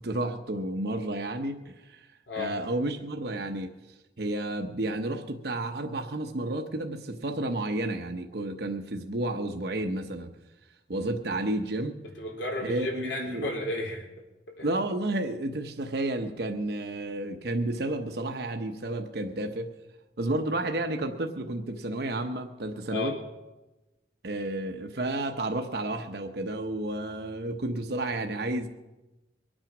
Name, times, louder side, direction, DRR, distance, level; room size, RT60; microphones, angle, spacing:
voice 1, 0.0-2.1 2.4-3.7 4.2-10.3 10.9-11.9 12.6-13.5 14.6-19.7 20.2-23.2 24.2-28.7, right 1 dB, 60° right, 4 dB, 0.9 m, -31 dB
voice 2, 12.2-14.0 14.6-14.7 22.9-23.1, left 2 dB, 85° left, 0 dB, 4.1 m, -33 dB
23.0 x 8.9 x 6.0 m, 1.1 s
head